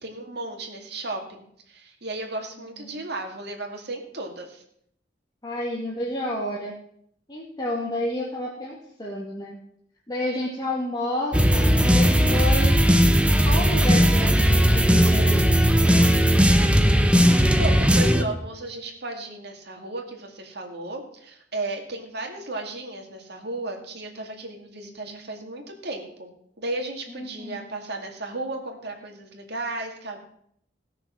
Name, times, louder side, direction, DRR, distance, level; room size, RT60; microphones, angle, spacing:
voice 1, 0.0-4.6 17.6-30.2, right 2 dB, 60° right, 3 dB, 2.3 m, -34 dB
voice 2, 5.4-6.7 7.3-9.6 10.1-12.8 13.5-15.6 27.1-27.7, left 1 dB, 25° left, -4 dB, 2.0 m, -30 dB
sound 1, 11.3-18.2, equal, 5° right, 0.8 m, -18 dB
16.5 x 6.6 x 6.2 m, 0.68 s
head